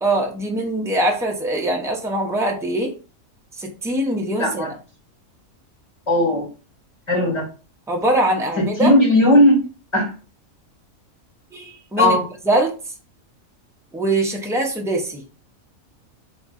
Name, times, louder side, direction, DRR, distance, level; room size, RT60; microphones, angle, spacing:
voice 1, 0.0-2.9 3.6-4.7 7.9-8.9 11.5-12.2 12.4-12.7 13.9-15.2, right 1 dB, 5° right, 1 dB, 0.3 m, -22 dB
voice 2, 6.1-6.4 7.1-7.4 8.6-9.6 9.9-10.1 12.0-12.2, left 1 dB, 20° left, -2 dB, 2.5 m, -16 dB
3.5 x 3.0 x 3.9 m, 0.34 s
omnidirectional pair, 1.5 m